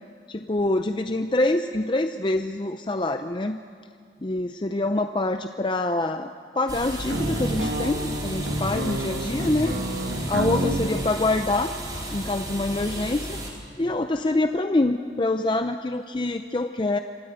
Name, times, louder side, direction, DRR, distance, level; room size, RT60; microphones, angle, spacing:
voice 1, 0.3-3.6 4.2-6.3 6.6-9.8 10.0-11.7 12.1-13.4 13.8-17.0, left 2 dB, 25° left, 7 dB, 0.5 m, -25 dB
sound 1, 6.7-13.5, right 1 dB, 25° right, 4.3 m, -34 dB
sound 2, 7.1-10.9, right 1 dB, 85° right, 2.0 m, -28 dB
26.0 x 13.5 x 8.9 m, 2.2 s
head